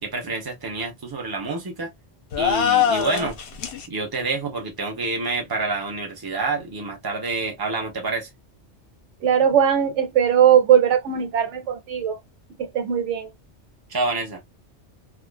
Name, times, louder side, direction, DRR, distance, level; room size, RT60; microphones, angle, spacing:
voice 1, 0.0-1.9 2.4-3.4 3.9-8.3 13.9-14.4, right 3 dB, 20° right, 0.8 m, -27 dB
sound 1, 2.3-3.9, left 9 dB, 70° left, 0.9 m, -22 dB
voice 2, 9.2-12.2 12.6-13.3, right 9 dB, 85° right, 1.0 m, -19 dB
2.5 x 2.4 x 2.2 m
omnidirectional pair, 1.2 m